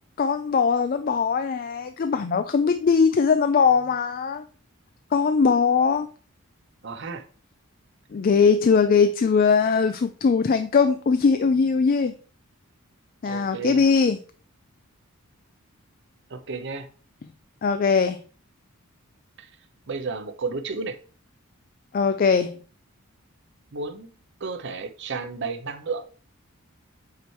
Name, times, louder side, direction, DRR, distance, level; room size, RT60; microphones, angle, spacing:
voice 1, 0.2-4.4 5.1-6.1 8.1-12.1 13.2-14.2 17.6-18.2 21.9-22.6, left 5 dB, 40° left, 0.3 m, -20 dB
voice 2, 6.8-7.2 13.2-13.8 16.3-16.9 19.4-19.5 19.9-21.0 23.7-24.1 24.4-26.0, right 4 dB, 55° right, 0.7 m, -32 dB
8.1 x 3.2 x 4.4 m
head